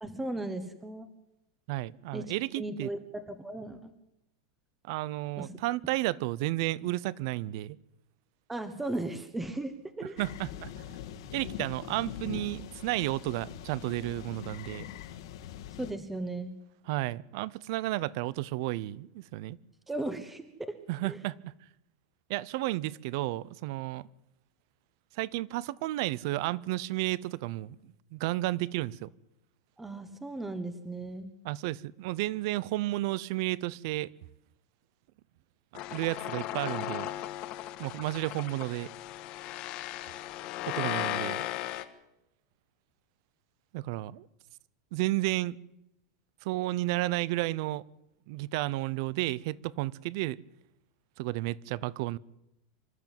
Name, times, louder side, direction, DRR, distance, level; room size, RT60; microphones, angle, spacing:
voice 1, 0.0-1.1 2.1-3.9 5.4-5.5 8.5-10.2 15.8-16.5 19.9-20.7 21.0-21.2 29.8-31.3, right 2 dB, 5° right, 1.2 m, -36 dB
voice 2, 1.7-2.9 4.9-7.8 10.2-10.8 11.3-14.9 16.9-19.6 20.9-21.4 22.3-24.1 25.1-29.1 31.4-34.1 35.9-37.1 37.8-38.9 40.7-41.5 43.7-44.3 44.9-45.6 46.4-47.8 48.3-50.4 51.2-52.2, right 18 dB, 50° right, 0.7 m, -32 dB
sound 1, 10.2-15.9, left 11 dB, 65° left, 2.1 m, -42 dB
sound 2, 35.8-41.8, left 14 dB, 40° left, 1.5 m, -36 dB
25.5 x 13.0 x 9.1 m
supercardioid pair, 160°, 3 cm